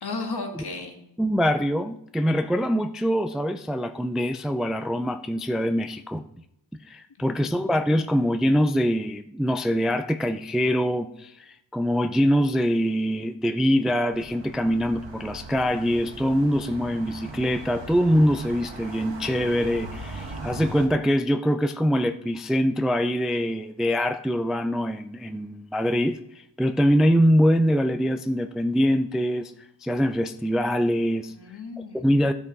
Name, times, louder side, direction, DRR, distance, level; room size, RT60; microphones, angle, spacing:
voice 1, 0.0-1.0 7.2-7.7 31.3-32.1, left 3 dB, 60° left, 3 dB, 1.8 m, -35 dB
voice 2, 1.2-6.2 6.9-31.3 31.9-32.3, equal, ahead, 8 dB, 0.3 m, -24 dB
sound 1, 14.1-20.9, right 2 dB, 75° right, 1.6 m, -39 dB
13.0 x 6.2 x 3.9 m, 0.79 s
wide cardioid pair, 90°, 44 cm